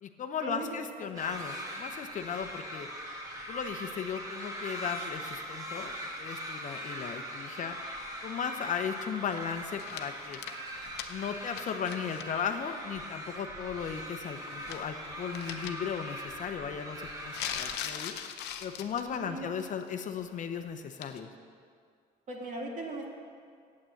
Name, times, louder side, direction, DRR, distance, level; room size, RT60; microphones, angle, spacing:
voice 1, 0.0-2.9 3.5-5.9 6.2-7.7 8.2-10.4 11.1-18.2 18.6-21.3, left 7 dB, 50° left, 7 dB, 0.8 m, -36 dB
sound 1, 1.1-17.8, equal, 20° right, 1.6 m, -41 dB
voice 2, 1.1-1.5 19.3-19.5 22.3-23.1, right 2 dB, 45° right, -1 dB, 2.3 m, -39 dB
sound 2, 9.3-12.3 12.6-12.7 14.2-15.0 15.3-15.7 17.3-19.2 19.6-19.9 21.0-21.2, left 10 dB, 85° left, 0.7 m, -41 dB
8.8 x 8.4 x 7.7 m, 2.2 s
cardioid pair, 110°, 17 cm